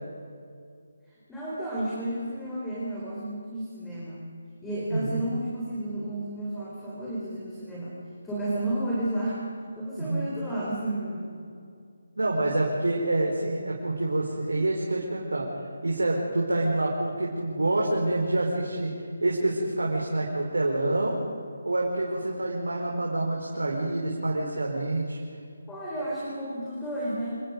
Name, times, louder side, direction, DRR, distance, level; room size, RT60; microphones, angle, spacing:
voice 1, 1.3-4.2 4.6-7.9 8.2-11.2 25.7-27.4, right 1 dB, 5° left, -8 dB, 4.6 m, -32 dB
voice 2, 4.9-5.2 9.9-10.3 12.2-15.5 15.8-18.9 19.2-21.2 21.6-25.2, right 2 dB, 85° right, -2 dB, 4.1 m, -27 dB
27.5 x 19.5 x 5.2 m, 2.3 s
figure-of-eight pair, 155°, 0 cm